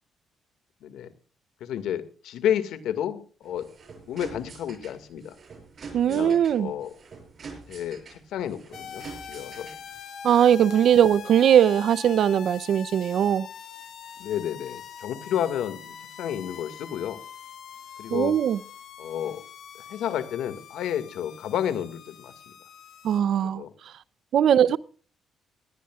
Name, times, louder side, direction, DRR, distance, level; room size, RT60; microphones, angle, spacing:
voice 1, 1.6-3.7 4.1-5.3 6.1-6.9 7.7-9.7 14.2-17.2 18.0-18.4 19.0-19.4 19.9-22.3 23.5-23.7 24.6-24.7, left 10 dB, 85° left, 2.1 m, -31 dB
sound 1, 3.4-10.0, right 4 dB, 50° right, 6.4 m, -45 dB
voice 2, 5.9-6.7 10.2-13.5 18.1-18.6 23.0-23.6 24.3-24.8, right 9 dB, 70° right, 0.7 m, -20 dB
sound 2, 8.7-23.2, left 8 dB, 65° left, 2.2 m, -43 dB
20.0 x 17.0 x 2.5 m
cardioid pair, 90°, 0 cm